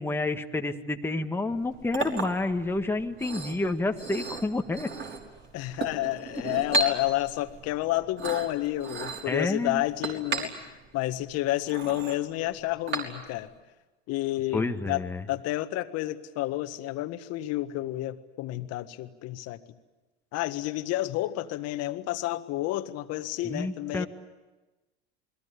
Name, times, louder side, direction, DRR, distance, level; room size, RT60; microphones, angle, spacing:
voice 1, 0.0-4.9 9.3-9.8 14.5-15.2 23.4-24.1, left 2 dB, 5° left, 5 dB, 1.6 m, -29 dB
Chink clink, 1.5-13.5, right 3 dB, 35° right, 5.4 m, -36 dB
voice 2, 5.5-13.5 14.1-19.6 20.3-24.1, left 16 dB, 50° left, 10 dB, 1.7 m, -30 dB
28.5 x 21.5 x 8.4 m, 1.1 s
hypercardioid pair, 90°, 32 cm